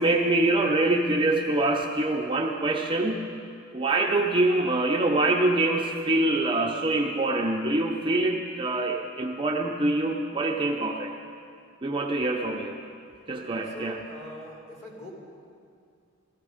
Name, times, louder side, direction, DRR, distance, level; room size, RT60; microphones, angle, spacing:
voice 1, 0.0-3.2 3.7-11.1 11.8-12.8 13.3-14.0, right 2 dB, 20° right, 1 dB, 0.6 m, -25 dB
voice 2, 13.7-15.1, left 1 dB, 35° left, -3 dB, 2.7 m, -42 dB
16.0 x 13.5 x 5.0 m, 2.4 s
head